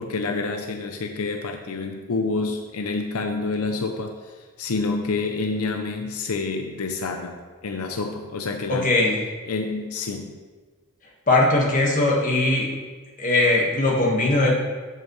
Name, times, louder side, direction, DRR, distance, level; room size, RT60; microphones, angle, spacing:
voice 1, 0.0-8.9 9.5-10.4, left 3 dB, 85° left, 5 dB, 0.6 m, -28 dB
voice 2, 8.7-9.2 11.3-12.7 13.2-14.5, left 2 dB, 35° left, -2 dB, 1.4 m, -20 dB
8.2 x 7.1 x 3.1 m, 1.4 s
head